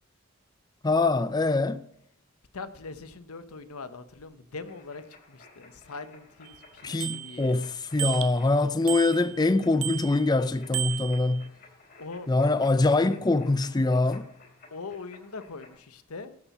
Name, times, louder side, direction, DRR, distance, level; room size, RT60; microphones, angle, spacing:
voice 1, 0.8-1.8 6.8-11.5 12.3-14.3, left 2 dB, 20° left, 0.4 m, -24 dB
voice 2, 2.5-7.6 12.0-12.3 14.7-16.4, left 4 dB, 85° left, 0.9 m, -42 dB
sound 1, 4.6-15.7, left 3 dB, 45° left, 3.6 m, -56 dB
Bicycle bell, 6.5-6.6 7.0-7.6 8.0-8.5 8.9-9.5 9.8-10.4 10.7-11.5, right 15 dB, 70° right, 0.7 m, -34 dB
13.0 x 7.1 x 6.9 m
head